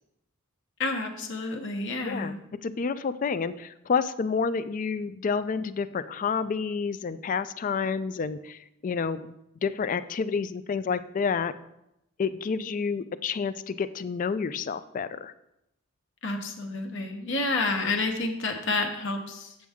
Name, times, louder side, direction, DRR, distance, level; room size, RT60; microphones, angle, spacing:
voice 1, 0.8-2.4 16.2-19.5, left 3 dB, 60° left, 4 dB, 1.0 m, -29 dB
voice 2, 2.0-2.4 2.6-9.3 9.6-11.5 12.2-15.3, left 5 dB, 40° left, 14 dB, 0.3 m, -29 dB
7.7 x 7.3 x 3.5 m, 0.85 s
head